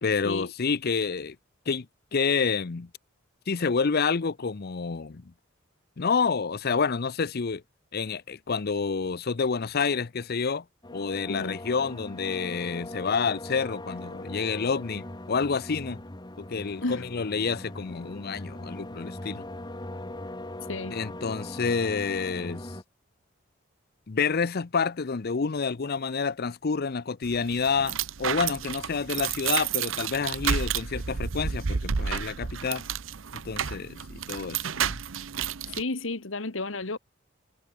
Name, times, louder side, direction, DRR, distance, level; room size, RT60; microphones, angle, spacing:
voice 1, 0.0-1.4 1.7-1.9 2.1-2.9 3.5-5.3 6.0-7.6 7.9-10.6 10.9-16.0 16.4-19.4 20.9-22.7 24.1-32.8 33.4-35.0, left 5 dB, 50° left, 0.6 m, -28 dB
sound 1, 10.8-22.8, left 1 dB, 20° left, 1.8 m, -40 dB
voice 2, 11.3-11.6 16.8-17.1 20.7-21.0 35.7-37.0, left 2 dB, 70° left, 1.7 m, -32 dB
sound 2, 27.2-35.8, right 7 dB, 75° right, 0.8 m, -31 dB
head